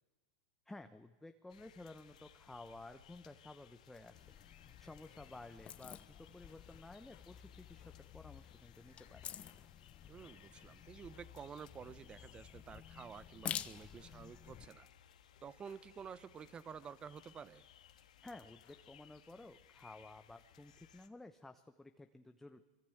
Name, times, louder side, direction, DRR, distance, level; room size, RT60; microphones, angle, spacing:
voice 1, 0.7-4.3 4.8-9.3 18.2-22.6, left 2 dB, 5° left, 7 dB, 1.0 m, -54 dB
sound 1, 1.5-21.1, left 10 dB, 85° left, 1.7 m, -63 dB
sound 2, 4.1-14.7, left 9 dB, 30° left, 1.0 m, -50 dB
sound 3, 5.1-17.6 18.0-19.2, left 11 dB, 55° left, 3.5 m, -71 dB
voice 2, 10.1-14.9 15.4-17.6, right 7 dB, 25° right, 16 dB, 1.0 m, -51 dB
25.0 x 24.0 x 8.0 m, 1.3 s
hypercardioid pair, 105°, 4 cm